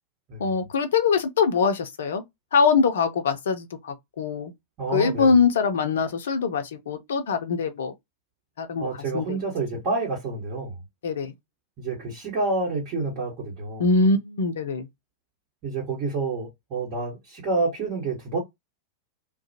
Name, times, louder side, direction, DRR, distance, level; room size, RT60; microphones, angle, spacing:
voice 1, 0.4-2.2 2.5-4.5 4.9-7.9 8.6-8.9 9.1-9.4 11.0-11.3 13.8-14.9, left 5 dB, 65° left, 0.5 m, -23 dB
voice 2, 4.8-5.3 8.8-10.7 11.8-13.8 15.6-18.4, right 3 dB, 35° right, 1.2 m, -28 dB
2.4 x 2.0 x 2.8 m
figure-of-eight pair, 90°, 0 cm